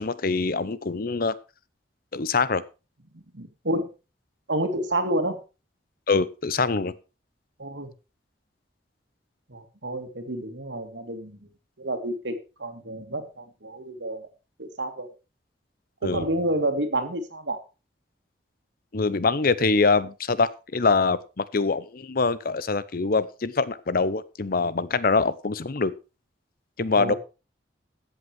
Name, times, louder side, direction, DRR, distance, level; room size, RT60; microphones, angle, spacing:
voice 1, 0.0-1.4 2.1-2.6 6.1-6.9 16.0-16.3 18.9-25.9 26.8-27.1, left 4 dB, 50° left, 17 dB, 0.8 m, -24 dB
voice 2, 3.1-3.9 4.5-5.4 7.6-7.9 9.5-11.5 11.8-14.3 14.6-15.1 16.0-17.6 26.9-27.2, right 1 dB, 80° right, 7 dB, 2.3 m, -29 dB
14.0 x 8.0 x 4.7 m, 0.31 s
head